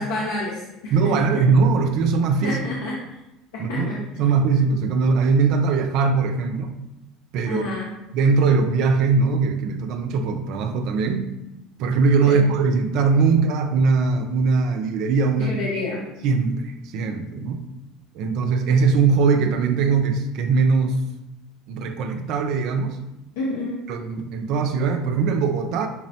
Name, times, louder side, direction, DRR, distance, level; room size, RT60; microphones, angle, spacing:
voice 1, 0.0-1.3 2.4-3.0 3.7-4.0 7.5-7.9 12.2-12.5 15.4-16.0 23.4-23.8, left 2 dB, 90° left, -4 dB, 0.6 m, -28 dB
voice 2, 0.9-2.6 3.6-3.9 4.2-6.7 7.3-7.6 8.1-11.3 11.8-15.5 16.2-17.6 18.1-21.0 21.7-23.0 23.9-25.9, right 4 dB, 65° right, 7 dB, 0.4 m, -20 dB
5.7 x 2.0 x 2.8 m, 0.95 s
supercardioid pair, 90°, 0 cm